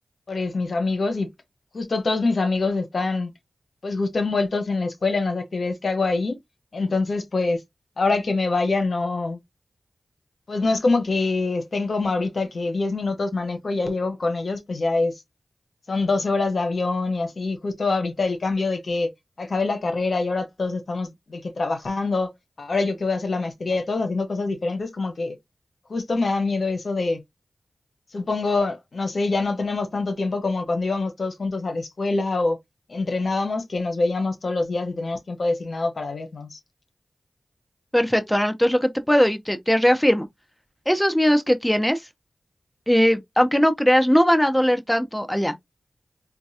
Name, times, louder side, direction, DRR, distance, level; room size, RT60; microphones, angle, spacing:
voice 1, 0.3-1.3 1.7-3.3 3.8-6.4 6.7-7.6 8.0-9.4 10.5-15.1 15.9-19.1 19.4-22.3 22.6-25.4 25.9-27.2 28.1-32.6 32.9-36.6, left 3 dB, 65° left, 1.0 m, -25 dB
voice 2, 37.9-40.3 40.9-42.0 42.9-45.5, equal, 5° left, 0.7 m, -19 dB
4.4 x 2.3 x 2.7 m
cardioid pair, 50°, 0 cm